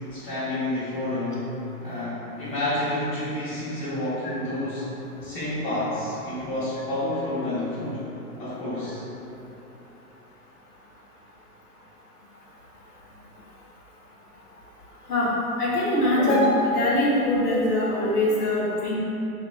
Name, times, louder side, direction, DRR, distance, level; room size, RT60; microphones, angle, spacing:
voice 1, 0.1-1.5 1.8-4.9 5.2-8.0 8.4-9.0, left 1 dB, 40° left, -12 dB, 0.9 m, -29 dB
voice 2, 15.6-19.0, left 1 dB, 80° left, -7 dB, 0.9 m, -22 dB
3.0 x 2.4 x 2.2 m, 2.9 s
hypercardioid pair, 110°, 45 cm